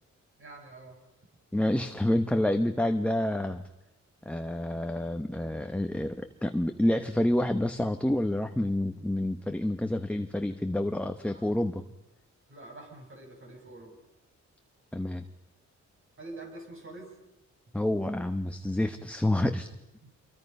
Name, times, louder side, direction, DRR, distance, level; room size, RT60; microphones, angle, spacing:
voice 1, 0.4-1.0 11.2-11.5 12.5-14.0 16.2-17.2 20.0-20.1, right 2 dB, 45° right, 2 dB, 6.3 m, -46 dB
voice 2, 1.5-3.6 4.3-11.8 14.9-15.2 17.7-19.7, left 1 dB, 5° left, 6 dB, 0.9 m, -28 dB
26.5 x 23.5 x 5.4 m, 0.97 s
wide cardioid pair, 115°, 29 cm